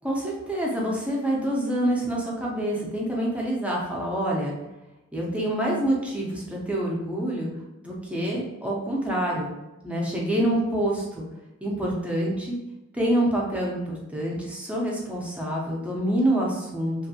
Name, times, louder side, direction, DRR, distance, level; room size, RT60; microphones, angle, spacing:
voice 1, 0.0-4.5 5.1-7.5 7.8-9.5 9.8-11.2 11.6-12.6 12.9-17.0, right 1 dB, 5° right, -3 dB, 0.6 m, -26 dB
2.8 x 2.6 x 2.7 m, 0.97 s
head